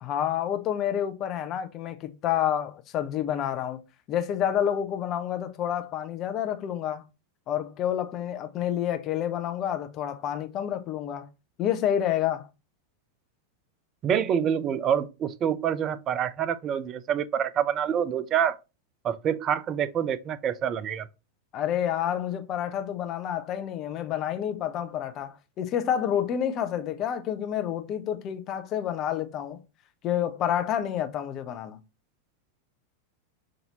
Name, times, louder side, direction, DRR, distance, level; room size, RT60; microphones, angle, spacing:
voice 1, 0.0-3.8 4.1-7.0 7.5-11.3 11.6-12.5 21.5-29.6 30.0-31.8, left 10 dB, 35° left, 0.6 m, -29 dB
voice 2, 14.0-18.6 19.0-21.1, right 8 dB, 30° right, 0.4 m, -26 dB
5.5 x 2.6 x 2.8 m
figure-of-eight pair, 90°, 0 cm